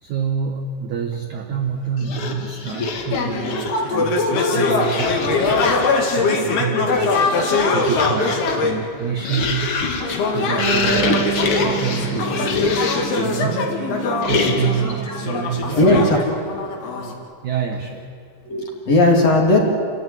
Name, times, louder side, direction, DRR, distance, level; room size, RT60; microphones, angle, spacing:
voice 1, 0.0-5.4 6.1-10.0 10.3-11.3 11.6-12.8 13.2-13.8 14.3-16.0 17.4-18.1, right 7 dB, 80° right, 4 dB, 1.7 m, -27 dB
sound 1, 2.0-3.9 4.8-6.0 6.7-13.2 14.2-14.9, left 4 dB, 75° left, 1.2 m, -25 dB
sound 2, 3.1-8.8 10.0-17.1, left 3 dB, 60° left, 4.2 m, -22 dB
Wind instrument woodwind instrument, 10.5-15.6, right 11 dB, 65° right, 2.9 m, -30 dB
voice 2, 14.9-15.4 15.7-16.2 18.4-19.6, left 2 dB, 40° left, 0 dB, 3.6 m, -17 dB
29.0 x 14.5 x 9.9 m, 2.2 s
omnidirectional pair, 5.5 m